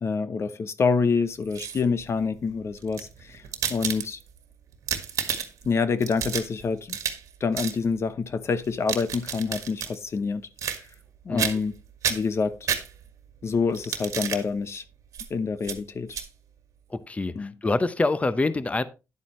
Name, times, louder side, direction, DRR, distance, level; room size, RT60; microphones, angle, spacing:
voice 1, 0.0-4.2 5.6-7.0 7.4-10.4 10.8-10.9 11.2-11.7 12.1-12.6 13.4-14.8 15.3-16.2 17.3-17.5, left 5 dB, 55° left, 0.9 m, -27 dB
sound 1, 1.3-2.0 2.8-4.4 4.7-5.7 6.0-7.3 7.5-7.8 8.6-9.9 10.6-11.1 11.4-11.7 12.0-13.2 13.7-14.4 15.1-15.3 15.6-15.8 16.1-16.3, right 8 dB, 85° right, 1.6 m, -31 dB
voice 2, 11.3-11.6 16.9-18.8, left 3 dB, 25° left, 0.8 m, -26 dB
10.5 x 8.4 x 3.2 m
cardioid pair, 75°, 5 cm